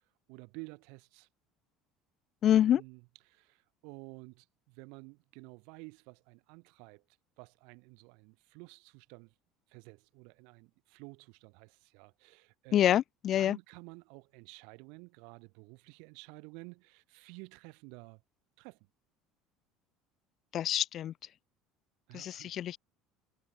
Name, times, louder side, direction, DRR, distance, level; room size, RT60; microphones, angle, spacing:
voice 1, 0.3-1.3 2.4-7.0 7.4-9.3 9.7-12.8 13.3-18.2 18.6-18.8 22.1-22.5, right 33 dB, 75° right, 6.5 m, -52 dB
voice 2, 2.4-2.8 12.7-13.6 20.5-21.1 22.1-22.8, left 11 dB, 45° left, 0.5 m, -26 dB
supercardioid pair, 110°, 0 cm